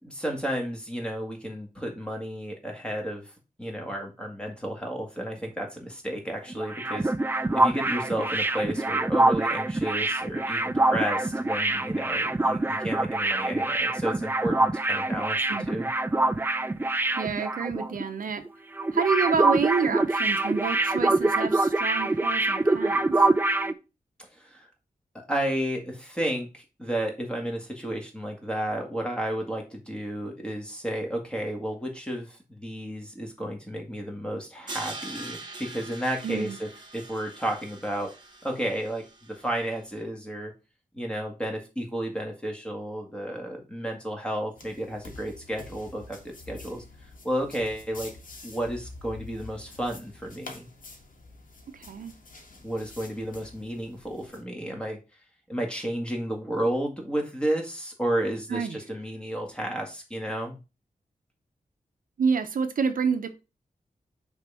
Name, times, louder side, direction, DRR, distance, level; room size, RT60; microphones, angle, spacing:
voice 1, 0.0-3.3 3.6-7.1 7.5-15.4 15.7-15.9 24.3-24.7 25.3-38.1 38.4-40.5 40.9-46.8 47.2-48.1 48.4-50.7 52.6-55.0 55.5-60.6, right 1 dB, 5° left, 1 dB, 2.0 m, -32 dB
sound 1, 6.5-18.0 18.3-18.5 18.8-23.7, right 2 dB, 15° right, 0.5 m, -25 dB
voice 2, 17.2-18.4 18.9-23.3 36.2-36.6 51.7-52.1 58.5-58.8 62.2-63.3, right 6 dB, 80° right, 8 dB, 0.8 m, -28 dB
Crash cymbal, 34.7-39.7, right 3 dB, 35° right, 1.4 m, -42 dB
sound 2, 44.6-54.4, left 2 dB, 75° left, 1.8 m, -47 dB
6.3 x 3.5 x 5.6 m, 0.29 s
wide cardioid pair, 120°, 14 cm